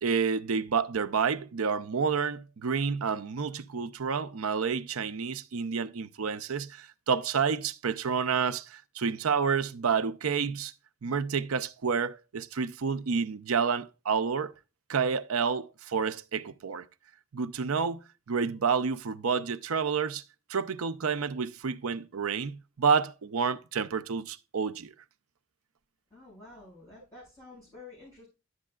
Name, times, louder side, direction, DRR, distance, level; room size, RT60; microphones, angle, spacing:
voice 1, 0.0-10.7 11.0-14.5 14.9-16.9 17.3-20.2 20.5-24.9, right 6 dB, 85° right, 0.6 m, -29 dB
voice 2, 26.1-28.3, left 3 dB, 15° left, 5.4 m, -50 dB
11.0 x 7.5 x 2.3 m
head